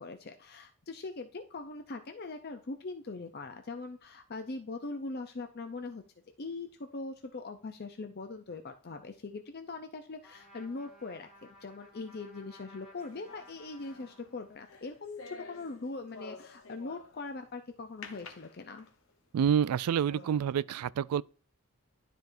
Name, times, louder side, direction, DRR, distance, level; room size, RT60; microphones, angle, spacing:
voice 1, 0.0-6.0 6.4-18.9, left 3 dB, 45° left, 0.6 m, -41 dB
Trumpet, 10.2-14.8, left 1 dB, 5° right, 2.2 m, -57 dB
sound 1, 13.0-17.4 18.0-19.1 19.6-19.7 20.1-20.5, left 4 dB, 65° left, 1.1 m, -50 dB
voice 2, 19.3-21.2, right 8 dB, 90° right, 0.3 m, -28 dB
12.0 x 4.6 x 2.6 m
head